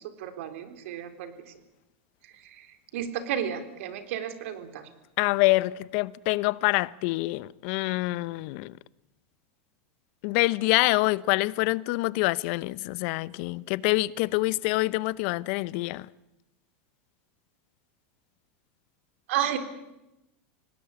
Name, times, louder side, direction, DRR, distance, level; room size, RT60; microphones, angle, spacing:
voice 1, 0.0-1.3 2.2-4.9 19.3-19.6, right 10 dB, 75° right, 3.6 m, -33 dB
voice 2, 5.2-8.8 10.2-16.1, left 21 dB, 60° left, 0.8 m, -26 dB
25.5 x 19.0 x 8.8 m
supercardioid pair, 120°, 7 cm